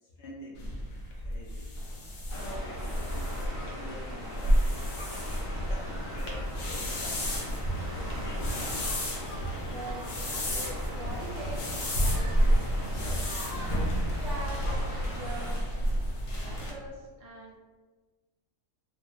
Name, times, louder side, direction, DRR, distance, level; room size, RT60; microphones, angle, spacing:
voice 1, 0.0-0.6 1.2-1.7 2.3-4.8 5.6-7.3, equal, 65° left, -6 dB, 0.6 m, -47 dB
sound 1, 0.6-16.7, equal, 85° left, 1.1 m, -31 dB
sound 2, 0.6-6.7 7.0-7.4 7.8-8.7 9.4-11.6 12.0-12.3 13.3-13.4 15.6-15.7 16.0-16.9, left 1 dB, 25° right, 0.9 m, -43 dB
sound 3, 2.3-15.5, equal, 20° left, 0.7 m, -37 dB
voice 2, 9.7-13.2 14.2-15.6 16.4-17.6, right 1 dB, 65° right, -3 dB, 0.9 m, -43 dB
2.6 x 2.3 x 2.4 m, 1.3 s
omnidirectional pair, 1.5 m